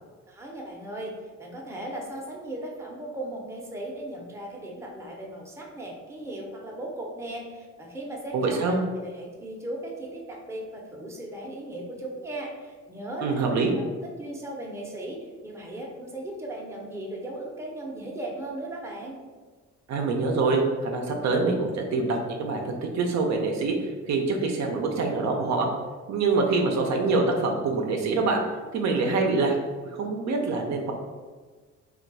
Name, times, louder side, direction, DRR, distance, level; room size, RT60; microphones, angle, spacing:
voice 1, 0.3-13.4 13.8-19.2, right 1 dB, 10° right, -2 dB, 0.6 m, -37 dB
voice 2, 8.3-8.8 13.2-13.7 19.9-25.7 26.1-28.4 28.7-29.6 29.9-30.9, right 3 dB, 65° right, 2 dB, 0.5 m, -25 dB
2.3 x 2.2 x 3.9 m, 1.4 s
cardioid pair, 90°, 30 cm